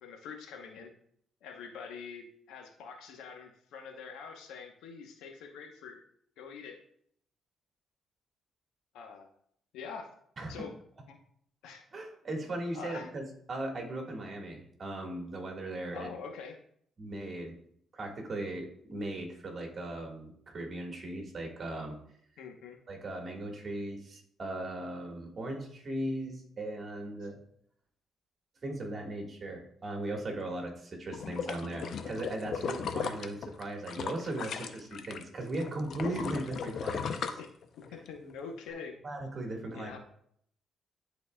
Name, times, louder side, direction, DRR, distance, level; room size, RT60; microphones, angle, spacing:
voice 1, 0.0-0.9 1.4-6.0 6.4-6.8 8.9-9.3 9.7-10.1 10.5-10.7 11.1-11.2 11.6-11.8 12.7-13.1 15.9-16.6 22.4-22.8 37.4-37.5 37.9-39.0 39.7-40.0, left 5 dB, 90° left, 4 dB, 0.9 m, -45 dB
voice 2, 11.9-16.1 17.0-17.5 17.9-22.0 22.9-27.4 28.6-37.4 39.0-39.9, right 1 dB, 40° right, 1 dB, 1.7 m, -38 dB
sound 1, 31.1-35.2 35.5-38.1 38.5-38.6, left 6 dB, 65° left, 0.6 m, -36 dB
11.0 x 4.0 x 2.3 m, 0.67 s
cardioid pair, 90°, 0 cm